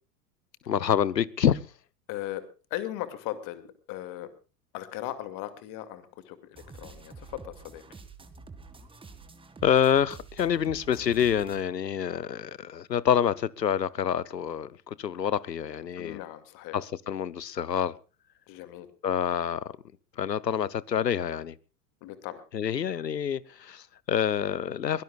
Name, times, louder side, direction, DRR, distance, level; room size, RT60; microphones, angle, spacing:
voice 1, 0.7-1.6 9.6-16.2 16.7-18.0 19.0-19.8 20.2-21.6 22.5-25.0, left 8 dB, 85° left, 0.9 m, -27 dB
voice 2, 2.1-2.4 2.7-4.3 4.7-7.8 16.0-16.8 18.5-18.9 22.0-22.4, left 14 dB, 40° left, 2.4 m, -38 dB
sound 1, 6.5-11.6, right 4 dB, 10° right, 1.9 m, -48 dB
23.0 x 19.0 x 2.4 m
figure-of-eight pair, 90°, 48 cm